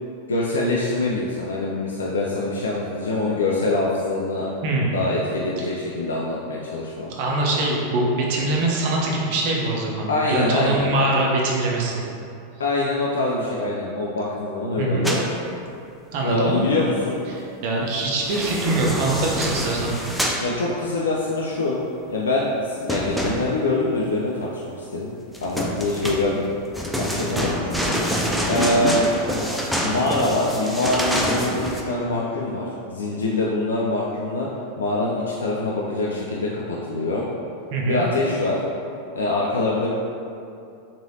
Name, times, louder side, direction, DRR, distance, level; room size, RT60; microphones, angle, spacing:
voice 1, 0.3-4.5 4.9-7.1 10.1-10.9 12.6-15.2 16.2-17.3 20.4-21.8 22.1-25.1 25.4-26.4 27.0-28.0 28.4-29.1 29.8-34.5 34.8-37.2 37.9-38.6 39.1-39.9, left 2 dB, 90° left, -4 dB, 0.3 m, -24 dB
voice 2, 4.6-4.9 5.6-5.7 7.1-12.0 14.8-15.1 16.1-16.6 17.3-19.9 37.7-38.0, right 2 dB, 60° right, -2 dB, 0.6 m, -23 dB
sound 1, 15.0-15.3 18.1-20.4 22.9-23.8 25.3-31.8, equal, ahead, 0.4 m, -26 dB
3.1 x 2.6 x 2.7 m, 2.6 s
hypercardioid pair, 105°, 0 cm